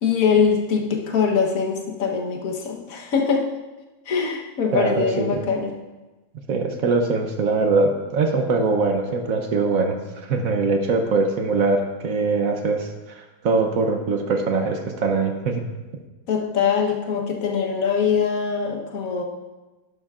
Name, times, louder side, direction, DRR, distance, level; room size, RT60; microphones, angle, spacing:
voice 1, 0.0-3.5 4.1-5.8 16.3-19.2, left 6 dB, 55° left, 1 dB, 1.5 m, -22 dB
voice 2, 4.7-5.4 6.5-10.0 10.3-15.6, right 3 dB, 60° right, 5 dB, 1.1 m, -22 dB
11.5 x 11.0 x 2.4 m, 1.1 s
omnidirectional pair, 1.9 m